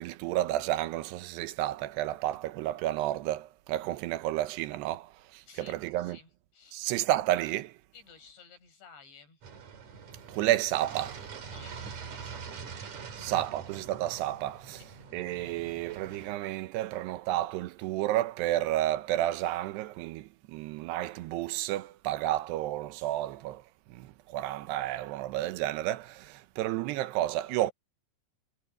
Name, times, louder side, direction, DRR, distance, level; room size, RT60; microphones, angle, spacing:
voice 1, 0.0-6.2 6.7-7.8 10.3-11.2 13.2-14.8 15.1-23.6 23.9-27.7, right 14 dB, 80° right, 2.9 m, -31 dB
voice 2, 5.5-6.8 7.9-9.4 11.5-13.3 14.7-14.9, left 5 dB, 90° left, 9.8 m, -55 dB
sound 1, 9.4-16.4, right 6 dB, 45° right, 3.6 m, -44 dB
omnidirectional pair, 4.9 m